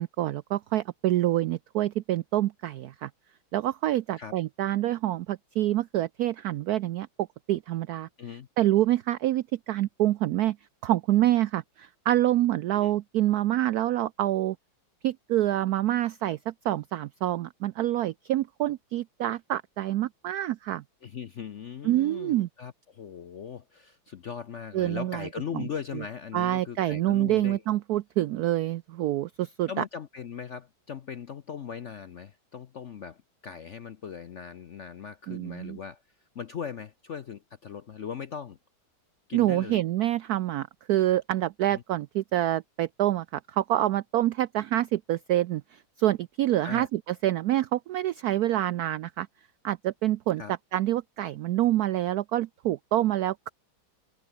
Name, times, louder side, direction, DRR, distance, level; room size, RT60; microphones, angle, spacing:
voice 1, 0.0-3.1 3.5-8.1 8.6-10.6 10.8-14.6 15.0-20.8 21.8-22.5 24.7-25.3 25.5-25.7 26.3-29.8 35.3-35.8 39.3-49.3 49.6-50.4 50.7-53.5, right 14 dB, 85° right, 0.8 m, -27 dB
voice 2, 21.0-27.6 29.7-36.0 36.3-38.6 39.3-39.8 41.7-41.8 46.6-46.9 50.4-50.5, left 7 dB, 60° left, 0.7 m, -39 dB
omnidirectional pair, 2.2 m